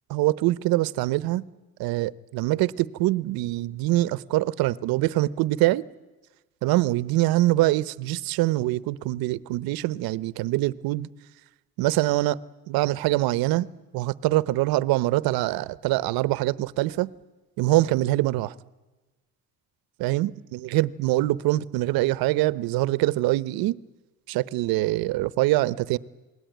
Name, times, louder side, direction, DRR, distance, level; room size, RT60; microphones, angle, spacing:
voice 1, 0.1-1.4 1.8-5.8 6.6-11.1 11.8-12.4 12.7-13.7 13.9-17.1 17.6-18.5 20.0-23.8 24.3-26.0, right 17 dB, 70° right, 0.8 m, -24 dB
28.0 x 20.5 x 9.2 m
cardioid pair, 155°, 37 cm